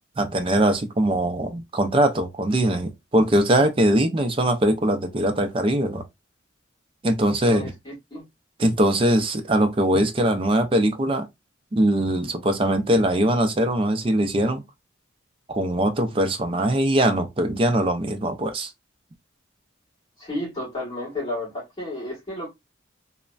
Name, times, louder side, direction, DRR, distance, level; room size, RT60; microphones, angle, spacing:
voice 1, 0.2-6.0 7.0-7.7 8.6-11.3 11.7-14.6 15.5-18.7, right 1 dB, 25° right, 0.4 m, -21 dB
voice 2, 7.4-8.2 20.2-22.5, left 1 dB, 25° left, 1.8 m, -32 dB
3.1 x 2.1 x 2.3 m
head